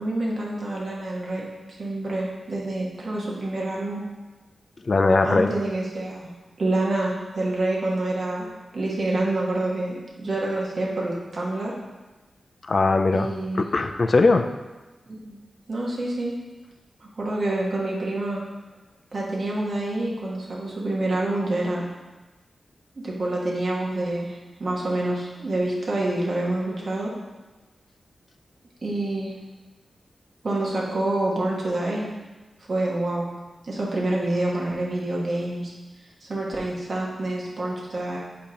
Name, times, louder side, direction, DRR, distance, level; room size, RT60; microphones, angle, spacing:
voice 1, 0.0-4.0 5.2-6.3 6.6-8.5 8.7-11.7 13.1-13.6 15.1-15.4 15.7-16.3 17.1-18.4 19.1-21.8 23.0-27.1 28.8-29.3 30.4-32.1 32.7-33.3 33.6-35.7 36.2-38.2, right 2 dB, 50° right, -4 dB, 1.3 m, -27 dB
voice 2, 4.8-5.5 12.7-13.3 13.6-14.5, left 3 dB, 45° left, 7 dB, 0.4 m, -20 dB
8.3 x 2.9 x 5.1 m, 1.2 s
wide cardioid pair, 105°, 0 cm